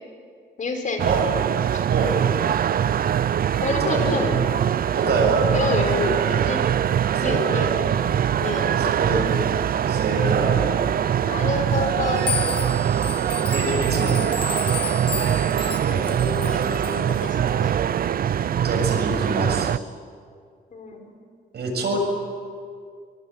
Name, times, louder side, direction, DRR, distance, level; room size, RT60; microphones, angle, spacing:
voice 1, 0.6-1.2 1.7-1.9 3.6-4.3 5.5-6.6 7.2-7.8 8.4-9.2 11.1-12.9 15.3-17.8 20.7-21.2, left 3 dB, 45° left, 3 dB, 5.3 m, -29 dB
sound 1, 1.0-19.8, right 9 dB, 55° right, 0.6 m, -23 dB
voice 2, 1.9-2.2 3.8-4.2 4.9-5.5 7.1-7.8 8.8-9.2 9.9-10.8 13.5-14.3 18.6-19.7 21.5-22.0, right 3 dB, 70° right, 1 dB, 7.6 m, -25 dB
sound 2, 12.2-17.2, left 6 dB, 30° left, 2.0 m, -32 dB
25.5 x 24.0 x 9.1 m, 2.2 s
cardioid pair, 115°, 17 cm